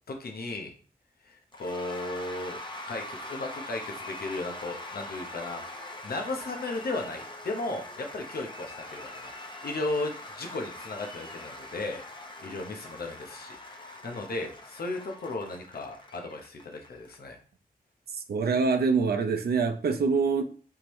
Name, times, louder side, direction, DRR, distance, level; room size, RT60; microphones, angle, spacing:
voice 1, 0.1-0.7 1.2-2.6 2.9-9.3 9.6-12.0 12.4-17.4, left 2 dB, 75° left, 3 dB, 0.9 m, -35 dB
Cheering / Applause / Crowd, 1.5-17.2, left 1 dB, 30° left, 0.8 m, -43 dB
voice 2, 18.3-20.4, right 5 dB, 90° right, 7 dB, 0.6 m, -25 dB
4.6 x 3.6 x 3.1 m, 0.41 s
wide cardioid pair, 85°, 16 cm